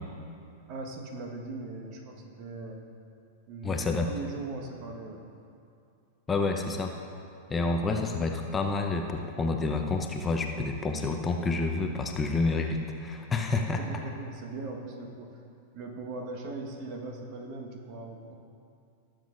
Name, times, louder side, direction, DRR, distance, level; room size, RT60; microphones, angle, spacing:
voice 1, 0.7-2.8 3.5-5.3 13.8-15.3 15.7-18.3, right 3 dB, 45° right, 2 dB, 1.3 m, -39 dB
voice 2, 3.6-4.1 6.3-6.9 7.5-13.8, left 3 dB, 20° left, 3 dB, 0.8 m, -29 dB
19.0 x 7.6 x 2.5 m, 2.5 s
figure-of-eight pair, 95°, 0 cm